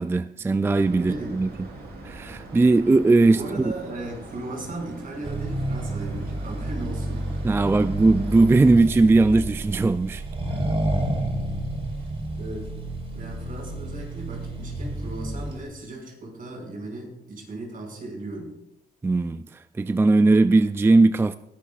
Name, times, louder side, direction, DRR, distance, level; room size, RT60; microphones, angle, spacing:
voice 1, 0.0-1.5 2.0-3.4 7.4-10.2 19.0-19.4 19.8-21.4, right 3 dB, 15° right, 0.3 m, -19 dB
sound 1, 0.6-8.7, right 2 dB, 75° right, 4.1 m, -43 dB
voice 2, 1.0-1.3 3.3-7.3 12.0-12.1 12.4-12.7 13.1-18.5, right 2 dB, 55° right, 5.7 m, -36 dB
Accelerating revving vroom, 5.2-15.6, right 1 dB, 35° right, 3.5 m, -30 dB
20.0 x 12.0 x 2.5 m
cardioid pair, 90°, 17 cm